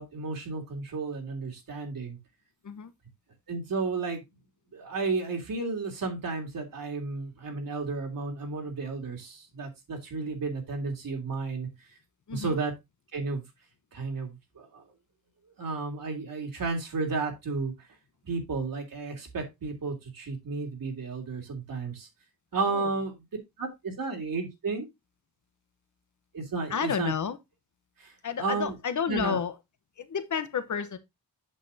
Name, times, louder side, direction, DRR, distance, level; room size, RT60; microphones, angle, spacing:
voice 1, 0.0-2.2 3.5-4.2 4.7-11.7 12.3-12.7 13.1-13.4 13.9-14.8 15.6-17.9 18.2-22.1 22.5-23.2 23.6-24.9 26.3-27.1 28.0-28.7 29.1-29.4, right 4 dB, 60° right, 3.1 m, -33 dB
voice 2, 12.3-12.6 22.6-22.9 26.7-27.4 28.2-29.5 30.0-31.0, left 7 dB, 50° left, 1.1 m, -31 dB
8.4 x 6.8 x 2.8 m
wide cardioid pair, 130°, 38 cm